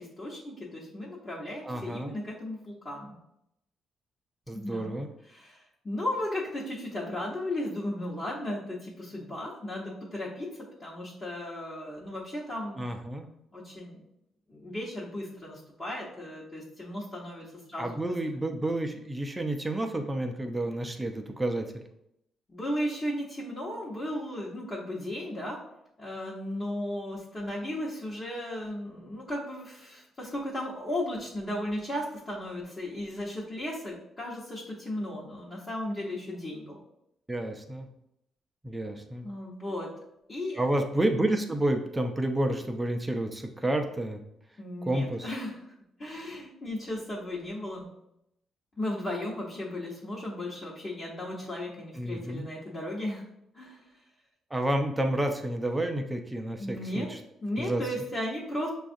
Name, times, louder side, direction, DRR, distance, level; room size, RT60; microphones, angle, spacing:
voice 1, 0.0-3.2 4.5-5.0 5.3-10.5 10.8-12.9 13.5-14.0 14.5-18.0 22.5-25.6 26.0-36.8 39.2-39.9 40.3-40.7 44.6-45.6 46.0-47.9 48.8-53.2 53.5-53.8 56.6-57.1 57.4-58.7, left 1 dB, 35° left, -7 dB, 0.9 m, -35 dB
voice 2, 1.6-2.1 4.5-5.1 12.8-13.3 17.8-21.6 37.3-37.9 38.6-39.2 40.6-44.2 44.9-45.3 51.9-52.5 54.5-57.2 57.6-57.8, right 1 dB, 15° right, 5 dB, 0.4 m, -30 dB
5.9 x 2.4 x 2.6 m, 0.80 s
cardioid pair, 90°, 0 cm